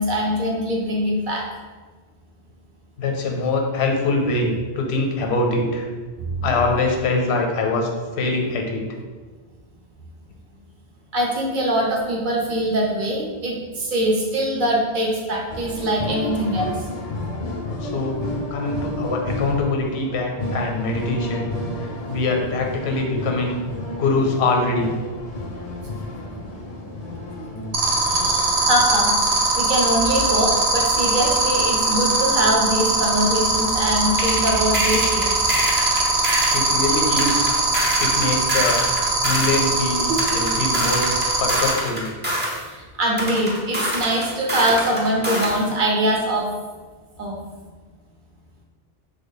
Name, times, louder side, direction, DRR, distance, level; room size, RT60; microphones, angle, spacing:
voice 1, 0.0-1.4 6.3-6.6 11.1-16.8 28.1-29.2 29.6-35.3 40.1-40.2 42.7-46.5 47.2-47.4, right 1 dB, 60° right, -1 dB, 0.6 m, -23 dB
voice 2, 3.0-5.9 6.4-8.8 17.8-18.2 18.5-21.5 21.8-23.6 24.0-24.9 36.5-37.5 38.0-38.8 39.2-40.1 40.3-41.1 41.4-42.1, left 3 dB, 85° left, 2 dB, 0.8 m, -23 dB
sound 1, 15.5-28.8, left 1 dB, 50° left, 0.5 m, -31 dB
sound 2, 27.7-41.7, right 4 dB, 90° right, 0.9 m, -20 dB
sound 3, 34.2-36.6 37.2-39.6 40.2-42.6 43.2-45.6, right 1 dB, 15° right, 0.5 m, -26 dB
3.2 x 2.1 x 3.8 m, 1.4 s
omnidirectional pair, 1.1 m